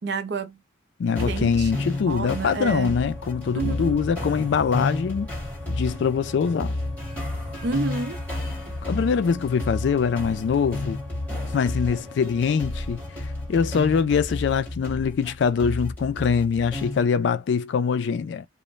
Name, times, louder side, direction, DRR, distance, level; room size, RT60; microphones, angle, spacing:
voice 1, 0.0-0.6 1.2-2.9 3.5-4.0 7.6-8.2, right 3 dB, 60° right, 0.5 m, -30 dB
voice 2, 1.0-5.3 5.7-6.8 8.8-11.0 11.5-18.5, left 6 dB, 65° left, 0.3 m, -23 dB
sound 1, 1.2-17.1, left 2 dB, 10° left, 1.5 m, -32 dB
2.5 x 2.1 x 3.0 m
head